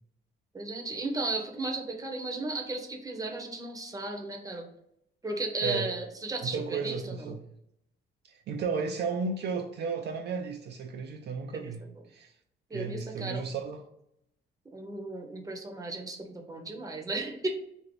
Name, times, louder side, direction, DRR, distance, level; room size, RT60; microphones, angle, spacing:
voice 1, 0.5-4.6 5.2-7.4 11.5-11.9 12.7-13.4 14.6-17.5, right 2 dB, 15° right, 0.7 m, -35 dB
voice 2, 6.4-7.4 8.3-11.8 12.1-12.3 12.7-13.8, right 5 dB, 60° right, 0.4 m, -33 dB
2.8 x 2.6 x 3.1 m
cardioid pair, 90°, 20 cm